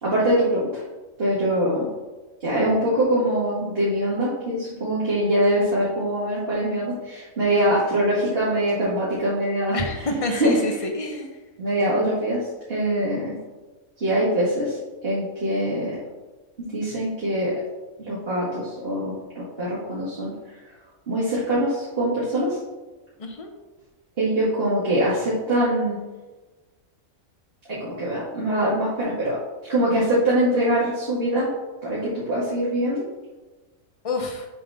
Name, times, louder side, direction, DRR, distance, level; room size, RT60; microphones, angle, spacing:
voice 1, 0.0-0.8 1.2-1.9 2.4-10.6 11.6-13.3 14.0-14.8 15.0-15.9 16.7-17.5 18.0-20.3 21.1-22.6 24.2-26.0 27.8-29.4 29.7-31.5 31.8-33.0, right 1 dB, 40° right, -9 dB, 2.2 m, -23 dB
voice 2, 9.7-11.3 23.2-23.5 34.0-34.5, left 2 dB, 25° left, 3 dB, 0.9 m, -28 dB
7.5 x 3.8 x 5.7 m, 1.2 s
omnidirectional pair, 1.5 m